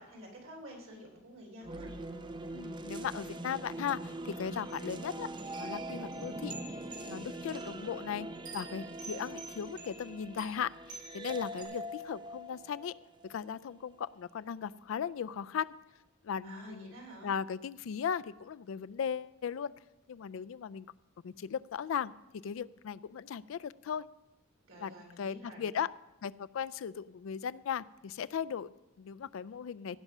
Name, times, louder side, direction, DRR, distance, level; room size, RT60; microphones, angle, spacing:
voice 1, 0.0-1.9 16.4-17.3 24.6-25.6, equal, 75° right, 0 dB, 3.4 m, -50 dB
sound 1, 1.6-13.8, right 1 dB, 20° right, 0.6 m, -43 dB
voice 2, 2.5-5.3 5.6-6.5 7.1-8.3 8.5-12.9 13.2-15.7 16.2-16.9 17.2-19.7 20.1-20.9 21.2-22.1 22.4-24.1 24.8-25.9 26.2-30.0, left 7 dB, 70° left, 16 dB, 0.3 m, -37 dB
sound 2, 4.7-4.8 5.4-7.7 8.4-11.2 11.6-11.7, right 4 dB, 40° right, 1.6 m, -49 dB
16.5 x 5.5 x 6.0 m, 0.96 s
head